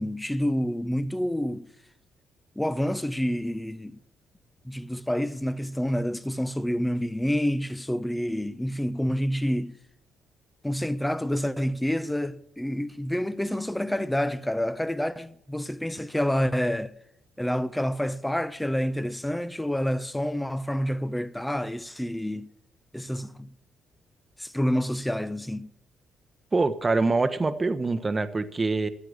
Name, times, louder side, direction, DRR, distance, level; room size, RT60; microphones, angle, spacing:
voice 1, 0.0-1.7 2.6-4.0 4.6-9.8 10.6-16.9 17.4-22.5 22.9-23.5 24.4-25.7, equal, 5° left, 0.9 m, -28 dB
voice 2, 26.5-28.9, right 3 dB, 25° right, 1.2 m, -25 dB
13.0 x 8.7 x 9.7 m
cardioid pair, 90°, 0 cm